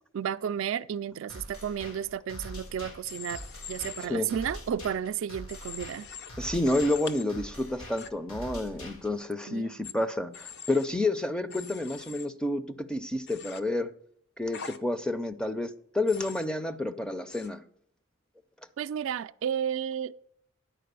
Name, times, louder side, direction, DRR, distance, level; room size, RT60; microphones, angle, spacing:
voice 1, 0.1-3.4 3.7-6.1 9.5-9.8 18.8-20.1, right 8 dB, 65° right, 0.3 m, -32 dB
sound 1, 1.3-9.3, equal, 80° left, 2.3 m, -44 dB
Human voice / Train, 3.1-4.1 5.5-6.3 6.6-7.2 8.0-8.1 9.8-9.9 10.3-10.8 11.5-12.3 13.3-13.6 14.5-14.8 16.1-16.5 17.3-17.5, left 7 dB, 55° left, 0.6 m, -42 dB
voice 2, 6.4-13.9 14.4-17.6, left 2 dB, 5° left, 0.4 m, -30 dB
10.0 x 4.6 x 6.7 m
head